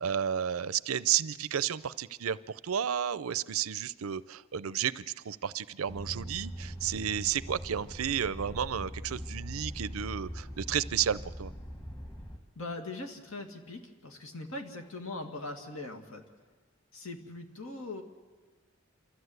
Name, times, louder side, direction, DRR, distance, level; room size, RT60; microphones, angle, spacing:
voice 1, 0.0-11.5, right 9 dB, 90° right, 17 dB, 0.6 m, -32 dB
sound 1, 5.9-12.4, equal, 20° left, 1.8 m, -41 dB
voice 2, 12.6-16.2 16.9-18.0, left 2 dB, 80° left, 3 dB, 2.3 m, -41 dB
28.5 x 13.5 x 8.1 m, 1.3 s
head